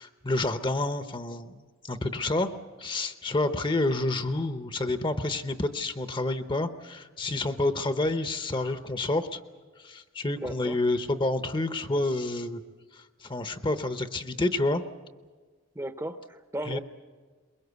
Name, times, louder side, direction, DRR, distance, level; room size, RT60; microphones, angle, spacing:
voice 1, 0.0-2.5 2.8-9.4 9.8-12.6 12.9-14.8 16.7-16.8, left 2 dB, 25° left, 10 dB, 0.8 m, -29 dB
voice 2, 10.4-10.8 15.7-16.8, right 1 dB, 15° right, 9 dB, 0.8 m, -35 dB
23.0 x 22.0 x 8.2 m, 1.5 s
head